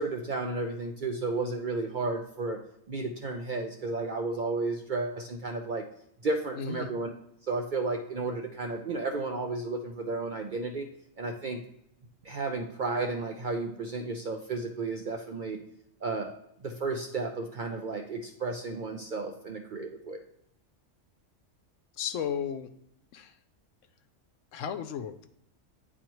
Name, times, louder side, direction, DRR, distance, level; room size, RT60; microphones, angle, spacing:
voice 1, 0.0-2.6 2.9-5.9 6.2-7.1 7.5-10.9 11.2-11.6 12.2-15.6 16.0-16.4 16.6-20.2, right 3 dB, 55° right, 3 dB, 0.6 m, -33 dB
voice 2, 6.5-6.9 22.0-22.7 23.1-23.3 24.5-25.3, left 7 dB, 75° left, 10 dB, 0.9 m, -34 dB
9.1 x 4.1 x 3.0 m, 0.77 s
omnidirectional pair, 1.4 m